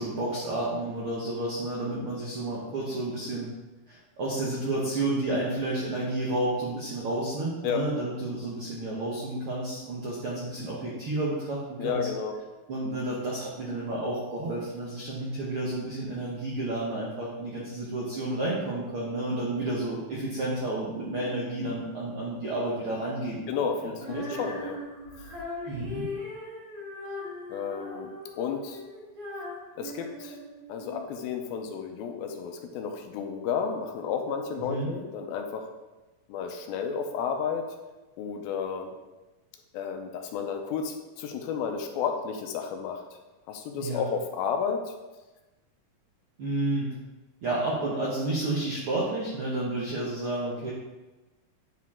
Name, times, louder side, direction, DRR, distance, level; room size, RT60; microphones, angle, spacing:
voice 1, 0.0-3.5 3.9-12.1 12.7-23.4 23.8-24.4 25.7-26.1 34.7-34.9 43.8-44.0 46.4-46.9 47.4-50.7, right 2 dB, 75° right, -5 dB, 1.2 m, -31 dB
voice 2, 11.8-12.4 23.5-24.8 27.5-28.1 28.4-28.8 29.8-30.4 30.7-35.7 36.3-37.7 38.2-38.9 39.7-43.0 43.5-44.9, left 6 dB, 85° left, 4 dB, 2.5 m, -32 dB
Female singing, 24.0-31.0, left 1 dB, 55° right, 1.7 m, -39 dB
9.1 x 4.7 x 3.6 m, 1.1 s
omnidirectional pair, 4.3 m